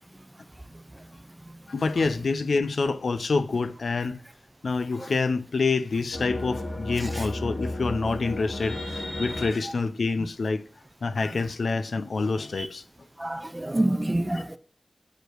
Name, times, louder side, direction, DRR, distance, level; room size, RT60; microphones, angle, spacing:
voice 1, 1.7-4.2 4.6-10.6 11.0-12.8, left 4 dB, 85° left, 0.5 m, -27 dB
sound 1, 6.1-9.5, left 1 dB, 50° left, 2.3 m, -33 dB
voice 2, 13.2-14.6, right 1 dB, 20° right, 0.7 m, -26 dB
8.2 x 5.0 x 4.5 m
wide cardioid pair, 90°, 0 cm